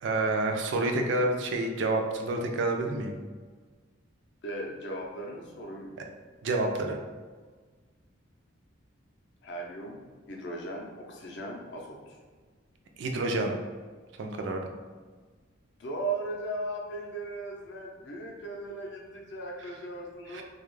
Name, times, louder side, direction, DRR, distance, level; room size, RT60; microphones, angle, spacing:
voice 1, 0.0-3.2 6.4-7.0 13.0-13.6 14.2-14.7 20.3-20.4, right 2 dB, 60° right, 3 dB, 0.3 m, -28 dB
voice 2, 4.4-6.0 9.4-10.0 10.3-12.2 15.8-20.4, right 2 dB, 55° left, -1 dB, 0.5 m, -37 dB
2.2 x 2.0 x 3.1 m, 1.4 s
head